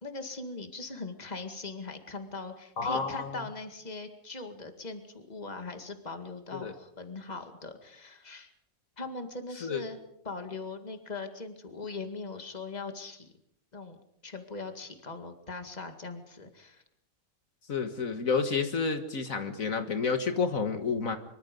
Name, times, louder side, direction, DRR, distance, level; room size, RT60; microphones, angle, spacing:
voice 1, 0.0-8.5 9.0-10.0 10.2-13.3 13.7-14.0 14.2-16.8, left 3 dB, 30° left, 7 dB, 2.2 m, -40 dB
voice 2, 2.8-3.4 6.5-6.7 9.6-9.8 17.7-21.2, left 5 dB, 70° left, 8 dB, 1.9 m, -30 dB
25.0 x 24.0 x 5.3 m, 0.73 s
omnidirectional pair, 1.5 m